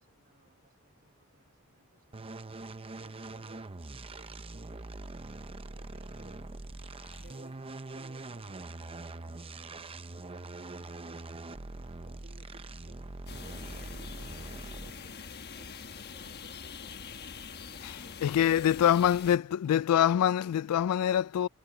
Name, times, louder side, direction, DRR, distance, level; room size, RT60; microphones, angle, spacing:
voice 1, 0.0-2.4 3.0-3.8 4.1-5.0 5.3-6.8 7.2-17.0 17.5-20.2, right 2 dB, 40° right, 4.3 m, -60 dB
sound 1, 2.1-15.1, right 2 dB, 25° right, 0.7 m, -43 dB
sound 2, 13.3-19.4, left 5 dB, 50° left, 1.2 m, -44 dB
voice 2, 18.2-21.5, left 10 dB, 80° left, 0.3 m, -25 dB
head